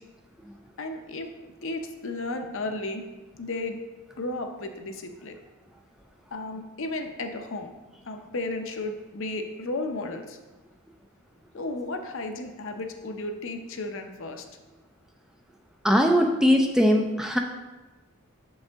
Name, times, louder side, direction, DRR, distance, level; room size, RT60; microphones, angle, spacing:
voice 1, 0.8-1.3 1.6-3.1 3.3-3.8 4.2-5.4 6.3-7.8 8.0-10.4 11.5-14.4, left 2 dB, 60° left, 5 dB, 0.6 m, -34 dB
voice 2, 15.8-17.4, equal, ahead, 2 dB, 0.3 m, -20 dB
6.8 x 5.4 x 3.4 m, 1.2 s
head